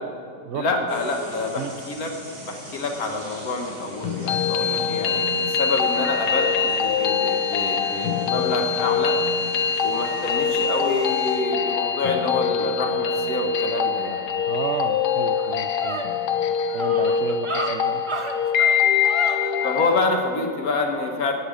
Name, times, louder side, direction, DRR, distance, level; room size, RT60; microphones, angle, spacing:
voice 1, 0.5-2.1 2.4-9.2 9.8-14.2 19.6-21.3, left 3 dB, 60° left, 3 dB, 1.8 m, -27 dB
sound 1, 0.9-11.4, right 1 dB, 90° right, 4.0 m, -42 dB
sound 2, 4.0-20.0, left 6 dB, 75° left, 1.3 m, -23 dB
voice 2, 14.5-16.0 16.7-18.0, right 6 dB, 65° right, 9 dB, 0.7 m, -31 dB
sound 3, 14.7-14.8 15.1-20.1, right 3 dB, 45° right, 0.4 m, -32 dB
17.0 x 8.3 x 4.9 m, 2.3 s
omnidirectional pair, 1.8 m